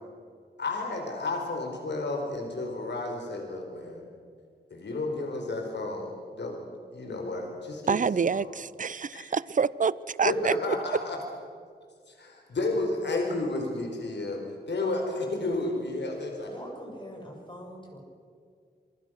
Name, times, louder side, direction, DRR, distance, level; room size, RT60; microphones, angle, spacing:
voice 1, 0.6-4.0 4.7-8.1 8.3-8.4 9.1-9.3 10.2-11.2 12.1-16.5, left 2 dB, 85° left, 2 dB, 4.5 m, -32 dB
voice 2, 7.9-10.7, right 6 dB, 50° right, 19 dB, 0.6 m, -27 dB
voice 3, 16.5-18.0, equal, 25° left, 1 dB, 7.2 m, -43 dB
27.0 x 24.5 x 6.5 m, 2.1 s
wide cardioid pair, 100°, 18 cm